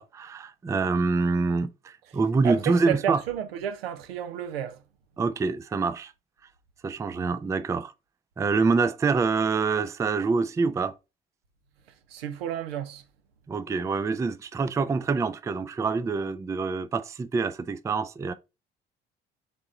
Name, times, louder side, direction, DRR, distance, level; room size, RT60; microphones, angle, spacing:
voice 1, 0.0-3.2 5.2-6.1 6.8-7.9 8.4-11.0 13.5-18.3, right 4 dB, 10° right, 0.3 m, -26 dB
voice 2, 2.4-4.8 12.1-13.0, right 9 dB, 80° right, 0.6 m, -31 dB
3.6 x 3.5 x 3.9 m
figure-of-eight pair, 45°, 30 cm